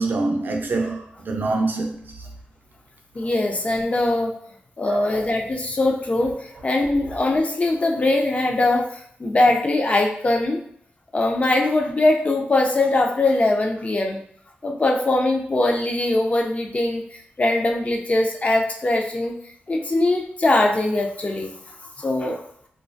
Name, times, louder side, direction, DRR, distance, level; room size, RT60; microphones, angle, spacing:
voice 1, 0.0-2.3 4.8-5.3, right 3 dB, 55° right, 0.5 m, -25 dB
voice 2, 3.1-4.4 4.8-10.6 11.1-14.2 14.6-19.4 19.7-21.5 22.0-22.4, left 2 dB, 35° left, 0.4 m, -21 dB
2.3 x 2.2 x 2.6 m
cardioid pair, 70°, 4 cm